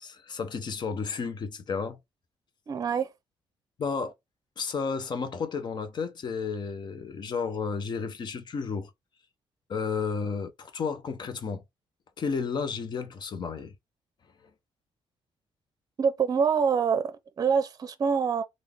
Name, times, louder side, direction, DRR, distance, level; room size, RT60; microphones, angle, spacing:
voice 1, 0.0-2.0 3.8-4.1 4.6-8.9 9.7-11.6 12.2-13.7, left 5 dB, 50° left, 0.8 m, -32 dB
voice 2, 2.7-3.1 16.0-18.4, right 6 dB, 40° right, 0.6 m, -25 dB
3.6 x 2.5 x 3.4 m
cardioid pair, 115°, 10 cm